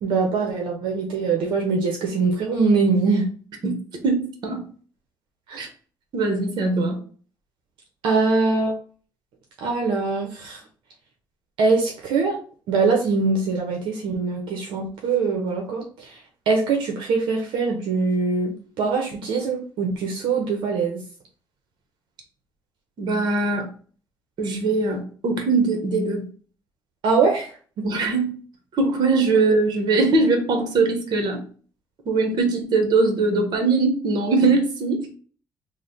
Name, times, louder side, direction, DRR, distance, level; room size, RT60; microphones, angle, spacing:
voice 1, 0.0-3.3 5.5-5.6 8.0-8.7 9.6-10.6 11.6-12.4 12.7-16.2 16.5-21.0 27.0-27.8, right 4 dB, 80° right, 1 dB, 0.7 m, -23 dB
voice 2, 3.6-4.6 5.6-5.7 6.1-7.0 23.0-23.7 24.4-26.2 27.8-28.3 28.7-31.4 32.1-35.2, right 3 dB, 55° right, 5 dB, 1.0 m, -21 dB
3.2 x 2.1 x 4.0 m, 0.42 s
cardioid pair, 110°, 8 cm